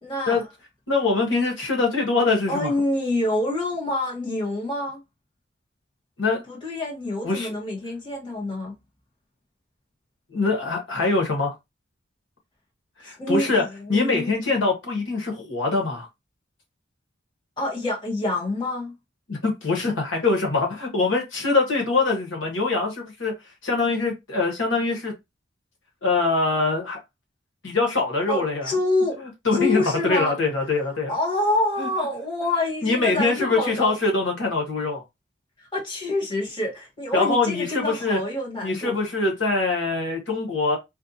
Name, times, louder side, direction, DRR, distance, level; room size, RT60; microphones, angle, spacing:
voice 1, 0.0-0.4 2.5-5.0 6.5-8.7 13.2-14.5 17.6-18.9 28.3-29.2 29.5-30.4 31.1-33.9 35.6-39.0, left 2 dB, 25° left, 1.5 m, -27 dB
voice 2, 0.9-2.7 6.2-6.4 7.2-7.5 10.3-11.5 13.0-13.6 13.9-16.1 19.3-23.3 23.6-25.1 26.0-27.0 27.6-28.7 29.4-31.1 31.8-31.9 32.8-35.0 37.1-38.2 38.6-40.8, left 3 dB, 85° left, 1.4 m, -23 dB
4.4 x 2.3 x 2.8 m
head